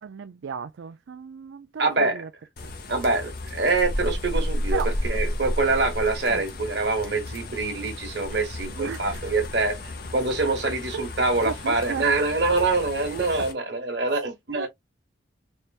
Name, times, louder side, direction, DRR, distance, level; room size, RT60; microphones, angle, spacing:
voice 1, 0.0-2.3 2.6-2.7 4.7-4.9 6.3-6.4 8.7-9.2 10.9-11.0 11.4-12.1 13.4-13.5 14.6-14.7, right 6 dB, 75° right, 0.4 m, -35 dB
voice 2, 1.8-2.2 2.9-9.8 10.1-14.7, right 3 dB, 55° right, 1.3 m, -25 dB
sound 1, 2.6-13.5, left 1 dB, 50° left, 0.9 m, -32 dB
4.4 x 3.3 x 2.4 m
head